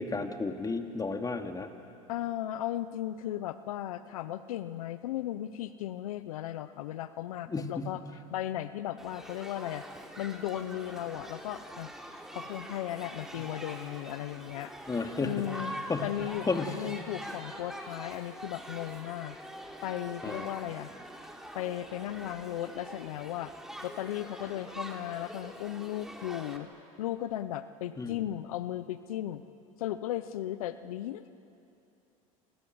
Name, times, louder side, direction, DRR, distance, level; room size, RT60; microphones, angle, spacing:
voice 1, 0.0-1.7 7.5-7.9 14.9-15.5 15.9-16.1 16.5-16.8 20.2-20.4 28.0-28.1, left 3 dB, 20° left, 5 dB, 2.6 m, -32 dB
voice 2, 2.1-8.0 8.3-9.8 10.2-11.9 12.3-14.7 15.2-15.7 16.0-19.4 19.8-20.9 21.5-23.5 23.8-26.7 27.0-29.4 29.8-31.3, left 12 dB, 85° left, 13 dB, 0.9 m, -36 dB
Shout / Human group actions, 9.0-26.6, right 1 dB, ahead, 3.5 m, -44 dB
29.0 x 26.0 x 8.0 m, 2.8 s
hypercardioid pair, 85°, 18 cm